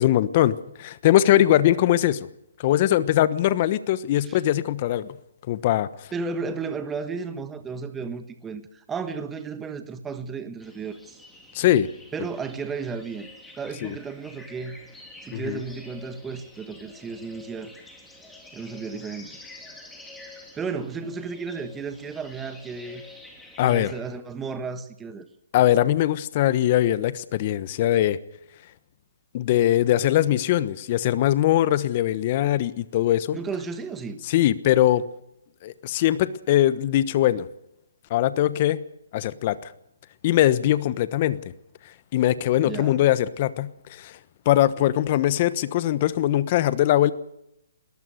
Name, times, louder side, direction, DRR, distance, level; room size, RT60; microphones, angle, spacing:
voice 1, 0.0-2.3 2.6-5.2 5.5-6.1 11.5-11.9 13.8-13.9 15.3-15.6 23.6-23.9 25.5-28.2 29.3-33.4 34.2-35.0 35.6-37.5 38.1-38.8 39.1-39.7 40.2-41.4 42.1-44.2 44.4-47.1, left 13 dB, 40° left, 1.1 m, -21 dB
voice 2, 6.1-11.2 12.1-13.3 13.6-14.8 15.2-17.7 18.5-19.4 20.5-23.0 23.6-25.3 33.3-34.2 42.6-43.0, right 5 dB, 10° right, 1.4 m, -33 dB
sound 1, 10.6-24.0, left 2 dB, 5° left, 3.2 m, -48 dB
21.5 x 18.5 x 6.6 m
hypercardioid pair, 150°, 0 cm